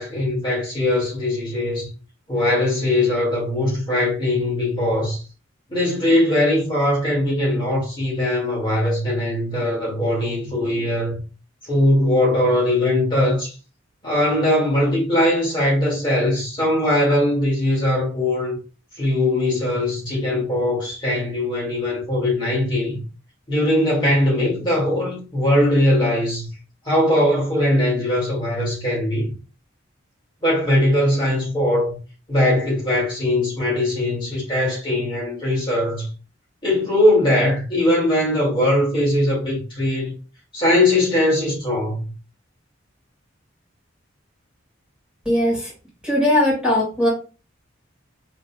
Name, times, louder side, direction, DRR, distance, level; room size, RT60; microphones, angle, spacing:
voice 1, 0.0-1.9 2.3-5.2 5.7-11.2 11.6-13.5 14.0-18.6 19.0-23.0 23.5-26.5 26.9-29.3 30.4-32.0 32.3-36.1 36.6-40.1 40.5-42.0, left 1 dB, 25° left, 1.9 m, -20 dB
voice 2, 45.3-45.7 46.0-47.1, left 1 dB, 5° right, 1.9 m, -19 dB
5.1 x 3.2 x 2.2 m
head